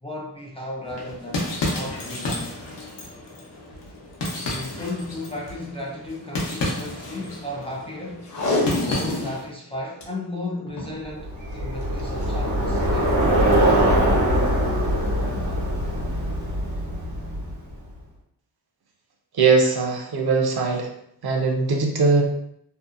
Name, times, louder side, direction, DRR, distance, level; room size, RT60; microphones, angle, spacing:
voice 1, 0.0-2.5 4.5-8.3 8.9-13.2, left 1 dB, 15° left, -3 dB, 0.3 m, -34 dB
sound 1, 0.8-9.5, left 2 dB, 85° left, 0.8 m, -32 dB
Packing tape duct tape, 8.2-9.4 9.7-9.8 10.0-10.1 10.7-11.0 12.0-12.2 12.8-12.9, left 2 dB, 45° left, 0.7 m, -26 dB
Bicycle, 11.2-17.7, right 1 dB, 90° right, 1.0 m, -22 dB
voice 2, 19.3-20.9 21.2-22.2, right 4 dB, 65° right, 2 dB, 0.6 m, -20 dB
2.7 x 2.0 x 2.4 m, 0.75 s
wide cardioid pair, 115°, 41 cm